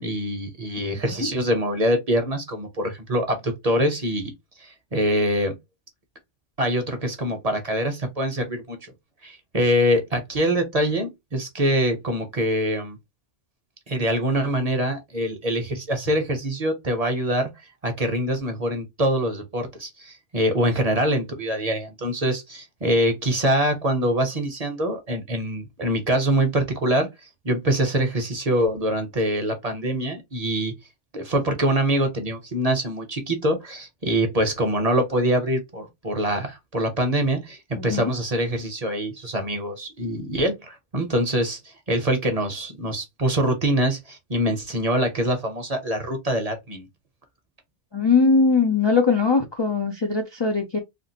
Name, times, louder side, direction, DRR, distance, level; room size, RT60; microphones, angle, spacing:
voice 1, 0.0-4.3 4.6-5.5 6.6-8.9 9.2-13.0 13.9-17.5 17.8-27.1 27.4-30.7 31.1-46.9, right 1 dB, 40° right, 0.7 m, -24 dB
voice 2, 0.9-1.3 37.7-38.1 47.9-50.8, left 4 dB, 45° left, 0.3 m, -21 dB
3.4 x 2.4 x 2.7 m
omnidirectional pair, 1.2 m